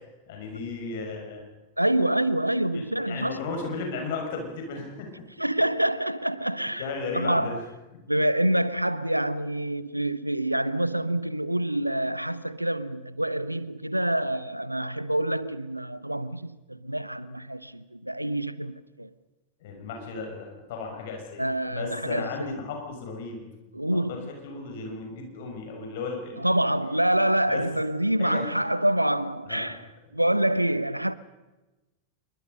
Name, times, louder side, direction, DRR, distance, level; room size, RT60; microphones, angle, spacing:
voice 1, 0.3-1.4 2.7-5.2 6.6-7.6 19.6-23.4 23.9-26.4 27.5-27.6 28.2-28.5 29.5-29.7, left 4 dB, 55° left, 6.1 m, -35 dB
voice 2, 1.8-3.4 5.4-6.9 7.1-7.6 8.1-19.1 21.4-22.5 23.7-24.3 26.4-29.8 30.1-31.1, right 1 dB, 90° right, 0.8 m, -26 dB
26.5 x 22.5 x 5.4 m
figure-of-eight pair, 90°, 0 cm